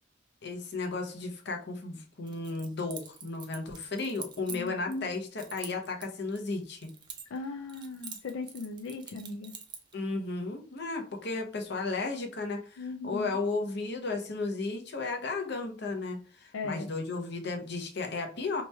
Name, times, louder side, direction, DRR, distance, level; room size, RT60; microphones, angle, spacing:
voice 1, 0.4-6.9 9.9-18.6, left 3 dB, 60° left, 3 dB, 0.7 m, -34 dB
Keys jangling, 2.3-5.0 5.4-7.4 7.7-9.9, right 6 dB, 25° right, 0.4 m, -45 dB
voice 2, 7.3-9.5 12.8-13.3 16.5-16.9, left 4 dB, 85° left, 3 dB, 0.4 m, -38 dB
3.0 x 2.2 x 4.1 m, 0.40 s
head